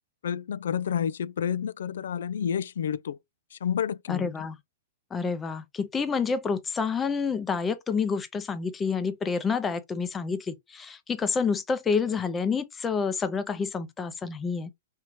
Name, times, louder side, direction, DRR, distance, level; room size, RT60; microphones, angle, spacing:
voice 1, 0.2-3.2 3.5-4.3, left 8 dB, 75° left, 0.3 m, -29 dB
voice 2, 4.1-4.6 5.1-14.7, left 5 dB, 15° left, 0.6 m, -28 dB
4.7 x 2.7 x 3.0 m
hypercardioid pair, 150°, 0 cm